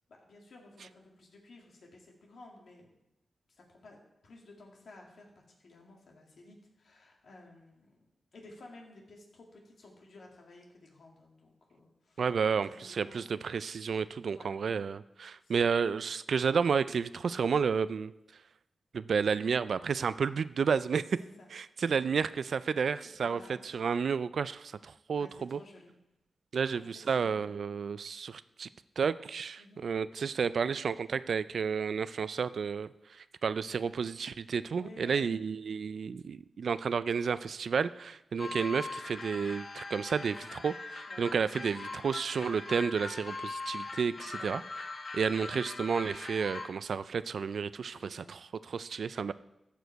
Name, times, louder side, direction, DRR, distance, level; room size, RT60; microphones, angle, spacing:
voice 1, 0.1-2.9 3.5-12.3 12.6-13.2 14.3-14.5 15.4-15.5 21.2-21.5 23.1-24.0 25.1-26.0 26.7-27.6 29.6-29.8 34.8-35.4 38.4-38.7 41.1-41.3 44.4-44.5 47.9-48.3, left 2 dB, 75° left, 0 dB, 2.3 m, -54 dB
voice 2, 12.2-18.1 18.9-21.0 21.5-25.6 26.5-28.7 29.0-44.6 45.1-48.4 48.7-49.3, right 6 dB, 75° right, 15 dB, 0.3 m, -31 dB
sound 1, 38.4-46.7, left 3 dB, 55° left, 1.0 m, -41 dB
14.5 x 5.1 x 4.6 m, 0.90 s
cardioid pair, 70°, 0 cm